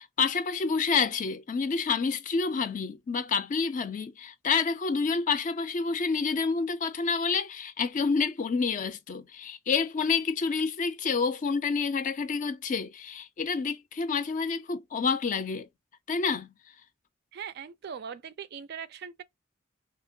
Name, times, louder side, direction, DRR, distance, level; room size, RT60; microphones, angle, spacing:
voice 1, 0.0-15.7 16.1-16.5, left 5 dB, 40° left, 0.4 m, -28 dB
voice 2, 17.3-19.2, right 7 dB, 55° right, 0.4 m, -40 dB
2.9 x 2.8 x 2.6 m
head